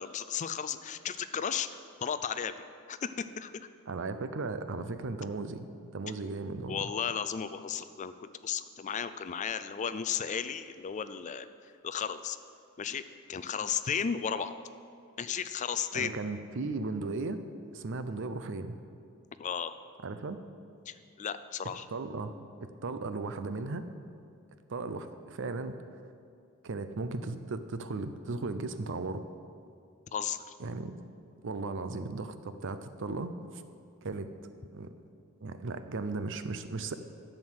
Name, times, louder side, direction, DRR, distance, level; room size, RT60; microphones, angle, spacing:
voice 1, 0.0-1.7 2.0-2.5 2.9-3.5 6.7-11.5 11.8-12.4 12.8-13.0 13.3-14.5 15.2-16.1 19.4-19.7 20.9-21.9 30.1-30.4, left 7 dB, 35° left, 12 dB, 0.4 m, -34 dB
voice 2, 3.9-5.7 5.9-6.8 15.9-17.4 17.7-18.8 20.0-20.4 21.9-22.3 22.6-23.9 24.7-26.0 26.6-29.2 30.6-30.9 31.4-33.6 34.0-34.3 34.7-34.9 35.4-36.9, right 3 dB, 60° right, 10 dB, 0.6 m, -36 dB
11.0 x 7.8 x 6.3 m, 2.5 s
head